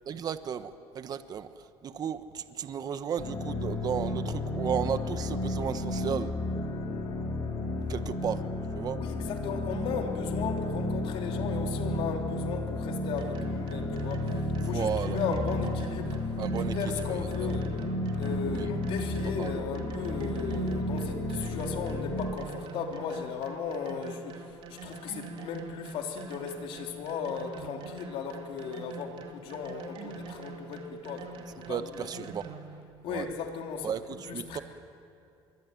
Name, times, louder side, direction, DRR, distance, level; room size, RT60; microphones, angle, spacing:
voice 1, 0.0-6.3 7.9-8.4 8.7-9.0 14.7-15.2 16.4-17.5 18.5-18.7 19.4-19.5 31.7-32.5 33.1-33.3 33.8-34.6, right 8 dB, 40° right, 10 dB, 1.3 m, -34 dB
sound 1, 3.2-22.3, left 1 dB, 45° left, 4.4 m, -32 dB
voice 2, 9.0-16.2 16.7-17.7 18.1-32.3 33.0-34.6, left 6 dB, 70° left, 2 dB, 3.4 m, -36 dB
sound 2, 13.2-32.8, right 4 dB, 60° right, 2.9 m, -45 dB
25.5 x 23.0 x 9.4 m, 2.6 s
cardioid pair, 115°, 10 cm